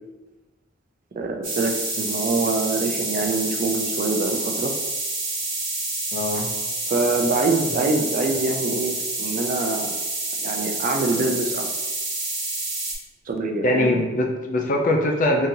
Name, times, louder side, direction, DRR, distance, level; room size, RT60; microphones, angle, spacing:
voice 1, 1.2-4.7 6.9-9.9 10.4-11.7 13.3-14.0, right 3 dB, 45° right, 3 dB, 0.4 m, -24 dB
sound 1, 1.4-12.9, right 2 dB, 15° right, 1.4 m, -28 dB
voice 2, 6.1-6.5 13.6-15.5, left 1 dB, 45° left, 2 dB, 0.5 m, -22 dB
3.8 x 2.8 x 2.6 m, 1.1 s
head